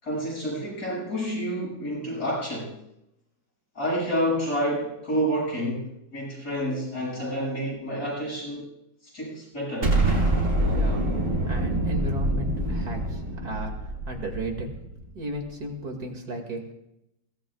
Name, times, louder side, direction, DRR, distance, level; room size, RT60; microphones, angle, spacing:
voice 1, 0.0-2.7 3.7-8.7 9.0-10.0, equal, 65° left, -5 dB, 8.1 m, -29 dB
Explosion, 9.8-15.0, right 1 dB, 45° right, 2.4 m, -25 dB
voice 2, 10.7-11.1 11.5-13.7 14.1-14.7 15.1-16.6, right 2 dB, 65° right, 3 dB, 2.9 m, -34 dB
22.5 x 17.5 x 2.4 m, 0.81 s
omnidirectional pair, 1.8 m